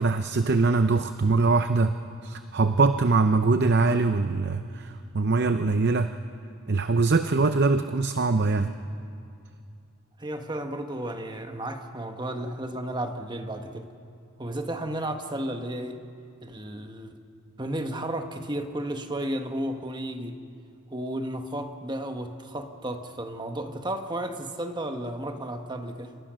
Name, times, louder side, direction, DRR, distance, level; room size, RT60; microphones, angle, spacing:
voice 1, 0.0-1.9 2.2-6.1 6.7-8.7, right 3 dB, 50° right, 9 dB, 0.6 m, -23 dB
voice 2, 10.2-13.9 14.4-16.0 16.4-17.2 17.6-20.4 20.9-26.2, right 1 dB, 20° right, 6 dB, 1.3 m, -33 dB
28.5 x 24.0 x 6.3 m, 2.5 s
head